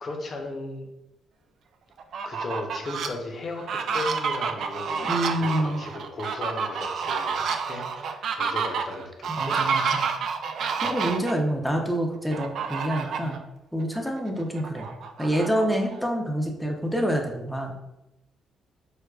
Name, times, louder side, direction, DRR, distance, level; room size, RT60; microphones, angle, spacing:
voice 1, 0.0-0.9 2.2-9.6 10.0-10.3 10.8-11.0, left 2 dB, 50° left, 2 dB, 0.7 m, -36 dB
Fowl, 2.0-3.1 3.6-11.3 12.3-13.4 13.8-13.9 14.3-16.0, right 6 dB, 65° right, 0.3 m, -29 dB
voice 2, 5.0-5.8 9.3-10.0 10.8-13.4 13.7-14.9 15.2-17.7, equal, ahead, 1 dB, 0.6 m, -27 dB
4.6 x 2.2 x 2.3 m, 0.90 s
cardioid pair, 90°, 0 cm